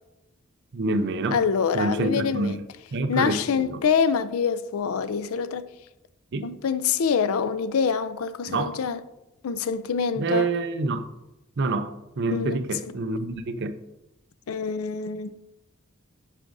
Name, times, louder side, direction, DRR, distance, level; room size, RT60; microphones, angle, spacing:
voice 1, 0.7-1.4 1.7-2.6 2.9-3.8 6.3-6.5 8.5-8.7 10.2-11.1 11.6-13.7, right 3 dB, 55° right, 0.5 m, -27 dB
voice 2, 1.3-2.6 3.1-5.7 6.4-9.0 9.4-10.5 12.3-12.5 14.5-15.4, left 6 dB, 80° left, 0.4 m, -25 dB
9.9 x 6.0 x 2.6 m
head